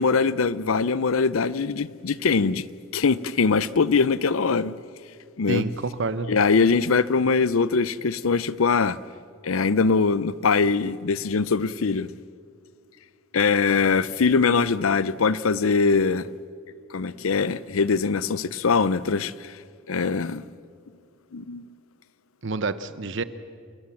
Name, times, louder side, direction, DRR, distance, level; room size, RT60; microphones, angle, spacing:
voice 1, 0.0-2.7 2.9-4.7 5.4-5.6 6.3-9.0 9.4-12.1 13.3-16.3 16.9-19.5 19.9-20.4 21.3-21.7, left 4 dB, 85° left, 0.6 m, -22 dB
voice 2, 5.5-6.4 22.4-23.2, right 3 dB, 60° right, 0.9 m, -28 dB
28.5 x 17.5 x 7.2 m
head